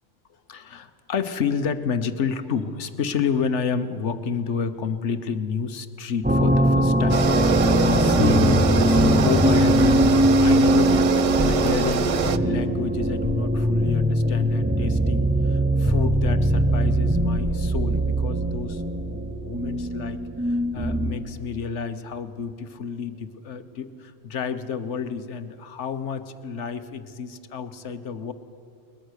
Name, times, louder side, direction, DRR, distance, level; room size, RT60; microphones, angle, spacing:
voice 1, 0.5-28.3, left 6 dB, 80° left, 10 dB, 1.3 m, -30 dB
sound 1, 6.2-21.3, right 1 dB, 10° right, 0.8 m, -21 dB
sound 2, 7.1-12.4, right 7 dB, 50° right, 0.4 m, -24 dB
21.5 x 20.5 x 6.5 m, 2.7 s
omnidirectional pair, 1.2 m